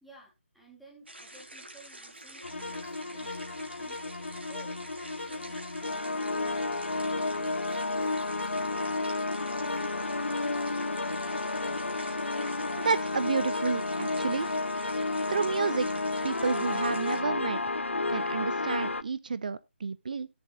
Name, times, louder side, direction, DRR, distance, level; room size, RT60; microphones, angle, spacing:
voice 1, 0.0-4.0 4.5-6.4 7.1-9.8 10.0-10.9, right 1 dB, ahead, 1.2 m, -57 dB
sound 1, 1.1-17.2, right 1 dB, 60° right, 2.9 m, -47 dB
sound 2, 2.4-19.0, left 3 dB, 70° left, 0.4 m, -32 dB
voice 2, 12.8-14.5 15.3-17.6 18.1-20.3, right 5 dB, 40° right, 0.4 m, -31 dB
17.0 x 6.9 x 2.3 m
figure-of-eight pair, 150°, 7 cm